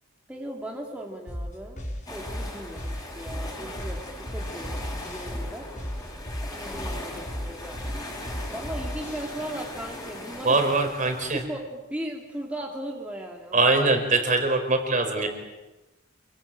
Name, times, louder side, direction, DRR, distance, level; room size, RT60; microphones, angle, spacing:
voice 1, 0.3-4.0 4.3-4.8 5.0-5.7 6.5-7.8 8.5-10.6 11.3-13.7, right 1 dB, 5° right, -1 dB, 2.9 m, -37 dB
sound 1, 1.3-9.3, equal, 35° left, 7.1 m, -35 dB
sound 2, 2.1-11.4, left 1 dB, 15° left, 7.8 m, -39 dB
voice 2, 10.4-11.4 13.5-15.3, right 3 dB, 40° right, 5 dB, 4.7 m, -22 dB
28.5 x 23.5 x 9.0 m, 1.1 s
head